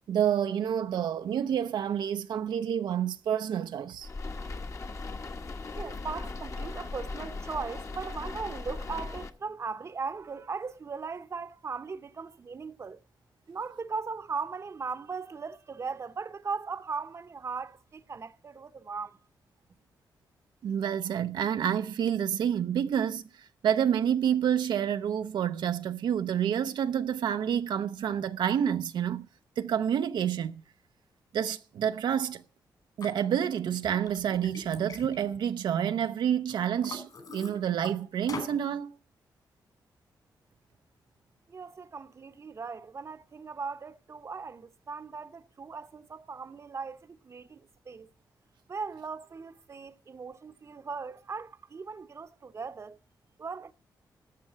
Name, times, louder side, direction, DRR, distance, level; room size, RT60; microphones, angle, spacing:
voice 1, 0.1-4.1 20.6-29.3 29.6-30.6 31.3-32.4 33.0-38.9, right 9 dB, 85° right, 0.6 m, -28 dB
sound 1, 4.0-9.3, left 3 dB, 40° left, 1.2 m, -38 dB
voice 2, 5.7-13.0 13.5-19.2 41.5-48.1 48.7-53.0 53.4-53.7, right 5 dB, 40° right, 0.8 m, -38 dB
Liquid, 33.0-33.1 33.6-36.1 36.5-37.9 38.3-38.6, left 4 dB, 60° left, 4.6 m, -43 dB
13.0 x 6.5 x 7.4 m
cardioid pair, 95°, 8 cm